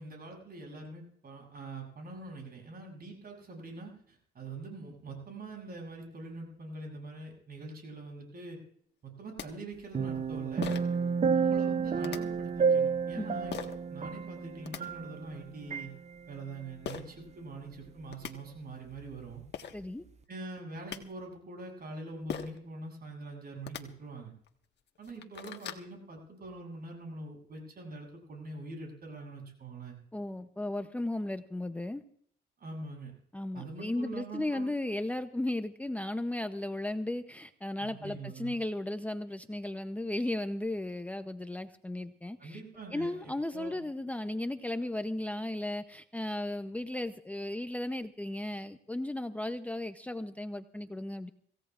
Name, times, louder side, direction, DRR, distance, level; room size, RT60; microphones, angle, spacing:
voice 1, 0.0-8.6 9.0-10.8 11.3-15.9 16.3-19.4 20.3-24.3 25.0-30.0 32.6-33.1 33.5-34.7 37.8-38.6 42.4-43.8, right 2 dB, 50° right, 1 dB, 8.0 m, -44 dB
sound 1, 9.1-9.2 9.4-9.5 10.6-11.0 12.0-12.2 13.5-13.8 14.4-14.8 16.8-17.0 17.8-17.9 18.1-18.3 19.2-19.3 19.5-19.8 20.6-21.0 22.3-22.6 23.6-23.8 24.5-24.6 25.0-25.9, left 7 dB, 60° left, 1.5 m, -39 dB
sound 2, 9.9-15.4 15.7-15.9, right 6 dB, 35° right, 0.7 m, -30 dB
voice 2, 19.7-20.0 30.1-32.0 33.3-42.6 42.9-51.3, left 1 dB, 5° left, 8 dB, 0.7 m, -35 dB
25.5 x 16.5 x 2.5 m, 0.64 s
cardioid pair, 90°, 20 cm